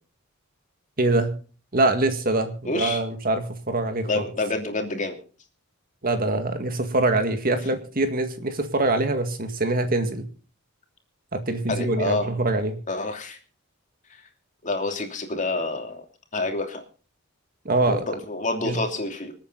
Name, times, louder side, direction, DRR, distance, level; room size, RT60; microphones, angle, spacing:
voice 1, 1.0-1.3 1.7-4.1 6.0-10.2 11.3-12.8 17.7-18.0 18.6-18.8, right 2 dB, 45° right, 7 dB, 2.0 m, -24 dB
voice 2, 2.7-3.0 4.1-5.2 11.7-12.3 12.9-13.4 14.1-14.2 14.6-16.0 16.3-16.8 17.8-19.3, left 2 dB, 35° left, 4 dB, 3.0 m, -28 dB
26.5 x 9.0 x 4.0 m, 0.37 s
head